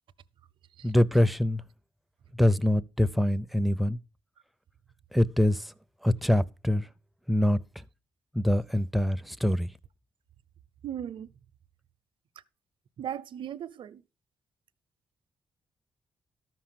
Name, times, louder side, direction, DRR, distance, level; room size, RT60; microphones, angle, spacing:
voice 1, 0.8-1.6 2.3-4.0 5.1-5.7 6.0-6.9 7.3-7.8 8.3-9.7, left 1 dB, ahead, 0.5 m, -24 dB
voice 2, 10.8-11.3 13.0-14.0, right 10 dB, 70° right, 0.7 m, -37 dB
13.5 x 6.1 x 5.8 m
wide cardioid pair, 155°, 9 cm